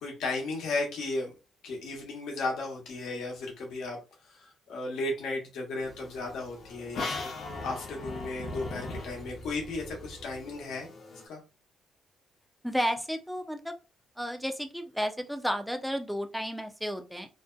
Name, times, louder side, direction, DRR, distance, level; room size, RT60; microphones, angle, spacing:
voice 1, 0.0-1.3 1.6-4.0 4.3-7.3 7.6-10.9 11.3-11.4, left 2 dB, 80° left, 0 dB, 0.8 m, -35 dB
sound 1, 5.8-11.3, left 2 dB, 50° left, 0.6 m, -40 dB
voice 2, 12.6-13.7 14.2-17.3, equal, ahead, 5 dB, 0.4 m, -32 dB
2.5 x 2.1 x 2.4 m, 0.30 s
cardioid pair, 90°, 0 cm